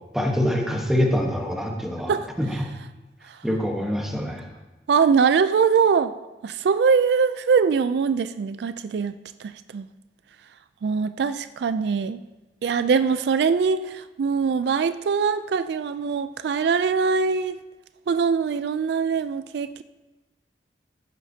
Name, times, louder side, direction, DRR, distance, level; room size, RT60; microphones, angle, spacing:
voice 1, 0.1-2.7 3.4-4.5, equal, ahead, 1 dB, 1.2 m, -25 dB
voice 2, 4.9-6.1 6.4-9.1 9.4-9.9 10.8-12.2 12.6-17.6 18.1-19.8, right 5 dB, 70° right, 12 dB, 0.3 m, -22 dB
15.0 x 8.2 x 2.8 m, 1.1 s
head